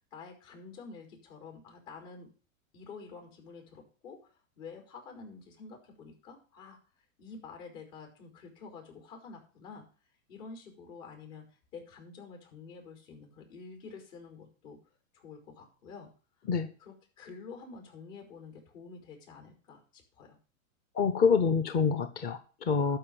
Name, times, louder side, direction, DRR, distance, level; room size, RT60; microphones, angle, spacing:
voice 1, 0.1-2.3 2.7-6.8 7.2-9.8 10.3-11.5 11.7-14.8 15.1-16.1 16.8-20.4, left 4 dB, 65° left, 4 dB, 5.3 m, -48 dB
voice 2, 20.9-23.0, left 5 dB, 25° left, 11 dB, 0.6 m, -26 dB
12.0 x 4.9 x 8.6 m, 0.39 s
hypercardioid pair, 130°, 41 cm